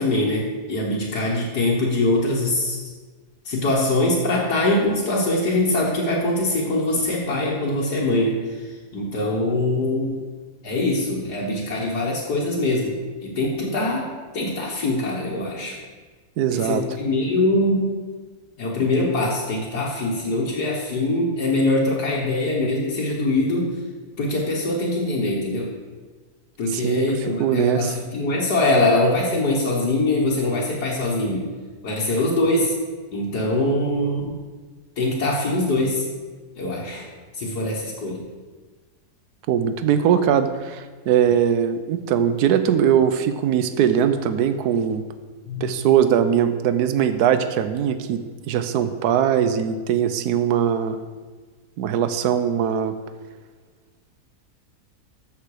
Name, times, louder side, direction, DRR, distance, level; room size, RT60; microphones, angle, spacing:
voice 1, 0.0-2.8 3.5-8.4 8.9-10.2 10.6-12.9 13.2-15.8 16.5-17.9 18.6-23.7 24.2-25.7 26.6-31.5 31.8-32.7 33.1-34.4 35.0-36.1 36.6-37.0 37.4-38.2 45.5-45.7, left 2 dB, 80° left, -6 dB, 2.1 m, -23 dB
voice 2, 16.4-16.8 26.7-28.0 39.5-45.0 45.6-51.0 51.8-52.9, right 9 dB, 75° right, 10 dB, 1.2 m, -21 dB
13.5 x 6.9 x 4.9 m, 1.4 s
omnidirectional pair, 1.7 m